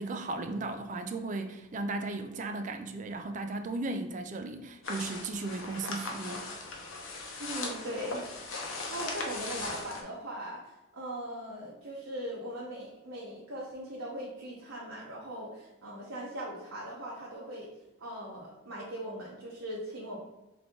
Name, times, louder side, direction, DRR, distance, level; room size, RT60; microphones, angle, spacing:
voice 1, 0.0-6.5, right 2 dB, 35° right, 0.3 m, -36 dB
sound 1, 4.8-10.0, left 3 dB, 75° left, 0.8 m, -38 dB
voice 2, 7.4-8.6 8.9-17.7 18.0-20.2, right 1 dB, 80° right, 0.9 m, -40 dB
3.6 x 3.4 x 3.6 m
head